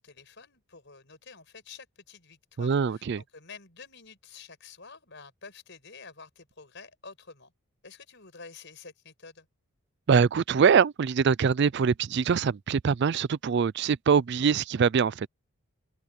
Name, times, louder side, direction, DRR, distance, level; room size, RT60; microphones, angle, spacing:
voice 1, 0.0-7.5 7.8-9.5, left 5 dB, 55° left, 6.4 m, -49 dB
voice 2, 2.6-3.2 10.1-15.3, right 6 dB, 55° right, 0.4 m, -23 dB
head